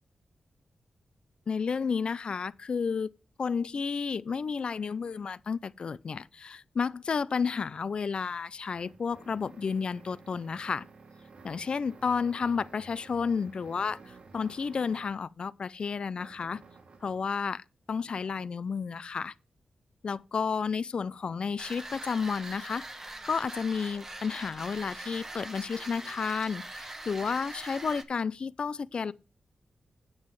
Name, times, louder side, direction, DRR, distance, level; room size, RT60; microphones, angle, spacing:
voice 1, 1.5-3.1 3.4-10.9 11.4-16.6 17.0-19.3 20.0-22.8 23.2-29.1, left 5 dB, 55° left, 0.4 m, -31 dB
sound 1, 8.1-15.3 16.2-17.3, right 4 dB, 65° right, 1.5 m, -53 dB
sound 2, 21.6-28.0, right 2 dB, 20° right, 1.1 m, -42 dB
8.7 x 7.5 x 4.7 m
wide cardioid pair, 140°, 2 cm